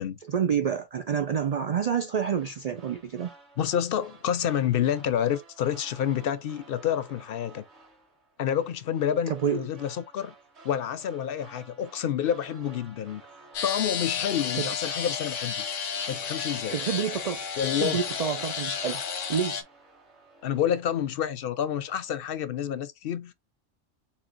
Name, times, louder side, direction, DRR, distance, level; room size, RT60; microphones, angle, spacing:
voice 1, 0.3-3.3 9.3-9.7 14.5-14.7 16.7-17.5 17.7-19.0 19.3-19.6, right 7 dB, 75° right, 0.3 m, -28 dB
sound 1, 2.2-21.4 21.7-22.2, right 3 dB, 60° right, 2.0 m, -54 dB
voice 2, 3.6-7.6 8.4-10.3 10.6-13.2 13.6-15.6 16.1-16.8 17.6-18.0 20.4-23.3, left 9 dB, 60° left, 0.6 m, -28 dB
sound 2, 13.5-19.6, left 6 dB, 80° left, 1.3 m, -32 dB
4.3 x 4.2 x 2.5 m
omnidirectional pair, 1.3 m